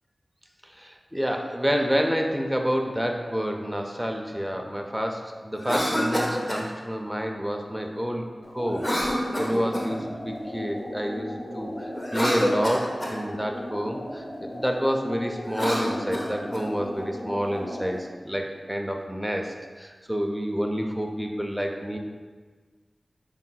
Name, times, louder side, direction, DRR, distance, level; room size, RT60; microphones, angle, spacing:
voice 1, 0.8-8.3 8.5-22.0, equal, 5° right, 2 dB, 0.4 m, -29 dB
Cough, 5.5-6.7 8.8-10.0 11.9-13.2 15.4-16.7, equal, 25° left, 0.7 m, -27 dB
sound 1, 8.4-18.0, equal, 70° left, 1.2 m, -36 dB
5.6 x 3.7 x 2.3 m, 1.5 s
wide cardioid pair, 75°, 0 cm